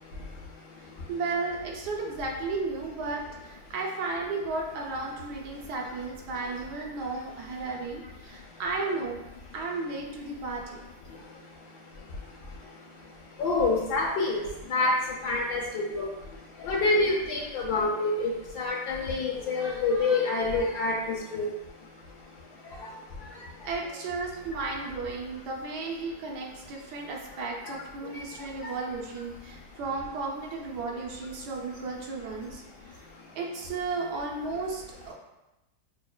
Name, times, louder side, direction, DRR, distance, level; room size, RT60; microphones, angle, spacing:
voice 1, 1.1-9.2 9.5-10.8 16.9-17.2 17.7-17.9 23.6-32.6 32.9-33.1 33.3-35.1, right 3 dB, 85° right, 0 dB, 1.3 m, -34 dB
voice 2, 13.4-14.4 14.7-14.9 15.2-16.1 16.6-18.3 18.6-21.0 21.3-21.4, left 3 dB, 80° left, -2 dB, 1.6 m, -26 dB
6.5 x 2.2 x 2.3 m, 0.96 s
omnidirectional pair, 1.7 m